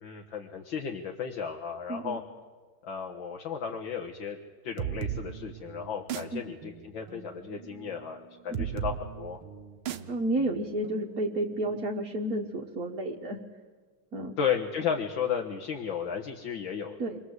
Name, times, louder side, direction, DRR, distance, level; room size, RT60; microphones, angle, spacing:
voice 1, 0.0-2.2 2.8-4.4 4.6-9.4 14.4-17.0, left 7 dB, 65° left, 1 dB, 2.4 m, -34 dB
voice 2, 1.9-2.2 6.3-6.4 8.5-8.7 10.1-13.4 14.1-14.4 17.0-17.2, right 1 dB, 45° right, 0 dB, 1.9 m, -31 dB
sound 1, 4.8-12.2, right 9 dB, 80° right, 1.9 m, -38 dB
29.0 x 22.0 x 8.2 m, 1.4 s
omnidirectional pair, 2.3 m